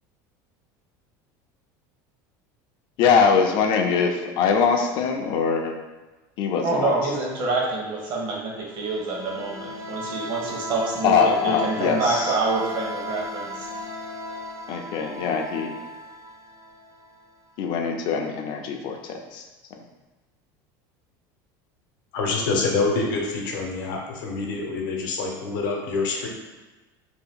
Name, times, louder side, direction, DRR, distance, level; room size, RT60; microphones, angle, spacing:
voice 1, 3.0-5.7 6.4-6.9 11.0-12.3 14.7-15.8 17.6-19.4, left 6 dB, 50° left, 4 dB, 0.4 m, -22 dB
voice 2, 6.6-13.7, right 3 dB, 50° right, -3 dB, 0.9 m, -27 dB
sound 1, 8.7-17.3, left 1 dB, 30° right, 0.5 m, -36 dB
voice 3, 22.1-26.3, left 3 dB, 85° left, 0 dB, 0.7 m, -26 dB
2.7 x 2.2 x 3.5 m, 1.2 s
supercardioid pair, 135°, 10 cm